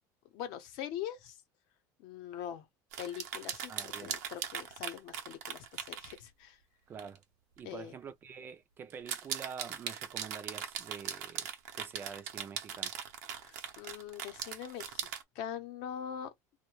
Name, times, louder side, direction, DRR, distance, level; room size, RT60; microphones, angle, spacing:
voice 1, 0.3-1.4 2.0-2.7 3.0-6.6 7.6-8.0 13.4-15.1 15.3-16.3, left 10 dB, 60° left, 0.7 m, -42 dB
sound 1, 2.9-6.2 7.0-7.2 7.6-7.7 8.9-15.2, right 9 dB, 85° right, 0.6 m, -40 dB
voice 2, 3.7-4.1 6.9-7.2 7.6-11.5 11.7-12.9, right 7 dB, 25° right, 0.3 m, -46 dB
2.2 x 2.1 x 3.0 m
cardioid pair, 155°, 8 cm